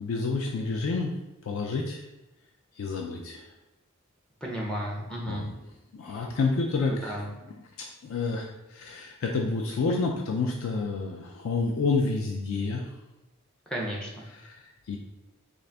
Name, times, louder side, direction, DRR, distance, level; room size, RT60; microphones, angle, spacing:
voice 1, 0.0-1.1 1.4-2.0 2.8-3.5 5.3-5.5 5.9-7.2 7.8-12.9 14.3-15.0, left 4 dB, 70° left, 2 dB, 0.3 m, -29 dB
voice 2, 4.4-5.5 6.1-6.2 6.9-7.3 13.7-14.2, equal, 5° left, -3 dB, 0.5 m, -33 dB
3.7 x 2.5 x 3.3 m, 0.99 s
head